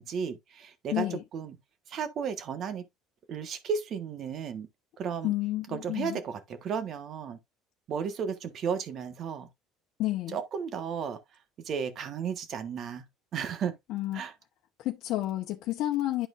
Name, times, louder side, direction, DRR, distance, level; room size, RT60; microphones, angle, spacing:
voice 1, 0.0-1.6 1.9-2.9 3.3-4.7 5.0-5.3 5.7-7.4 7.9-9.5 10.3-11.2 11.6-13.0 13.3-13.8 14.1-14.3, right 6 dB, 45° right, 1.4 m, -34 dB
voice 2, 0.9-1.2 5.2-6.2 10.0-10.4 13.9-14.2 14.8-16.3, left 15 dB, 65° left, 1.0 m, -30 dB
11.5 x 4.5 x 2.5 m
cardioid pair, 125°, 0 cm